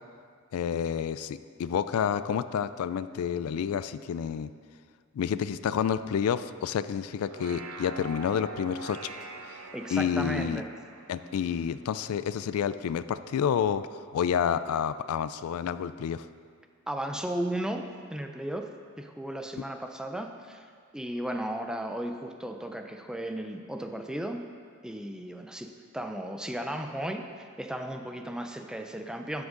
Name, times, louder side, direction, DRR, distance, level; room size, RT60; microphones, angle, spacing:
voice 1, 0.5-4.5 5.1-9.1 9.9-10.6 11.1-16.2, left 8 dB, 85° left, 14 dB, 0.3 m, -29 dB
sound 1, 7.1-12.6, right 3 dB, 75° right, 0.7 m, -44 dB
voice 2, 9.7-10.7 16.9-20.7 20.9-24.5 24.8-29.5, right 1 dB, 5° right, 5 dB, 0.4 m, -35 dB
12.5 x 6.1 x 3.8 m, 2.1 s
head